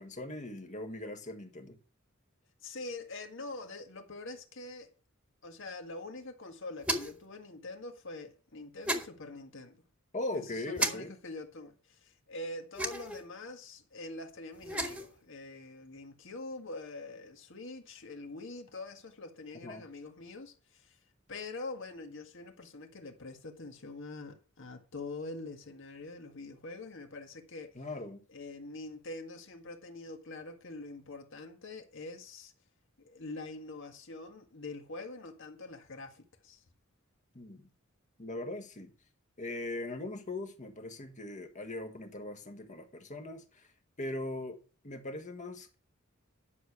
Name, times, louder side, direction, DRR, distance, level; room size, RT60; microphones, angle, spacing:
voice 1, 0.0-1.8 10.1-11.1 19.6-19.8 27.7-28.2 37.3-37.7 38.2-38.9 39.4-43.7 44.0-45.8, left 2 dB, 35° left, 1.5 m, -40 dB
voice 2, 2.6-4.9 5.4-9.8 10.3-21.0 21.3-27.8 28.3-32.5 33.0-36.6, left 2 dB, 65° left, 1.7 m, -44 dB
sound 1, 6.8-7.2 8.8-9.1 10.8-10.9 12.7-13.2 14.5-15.1, right 1 dB, 5° right, 1.5 m, -32 dB
11.0 x 6.7 x 6.0 m
head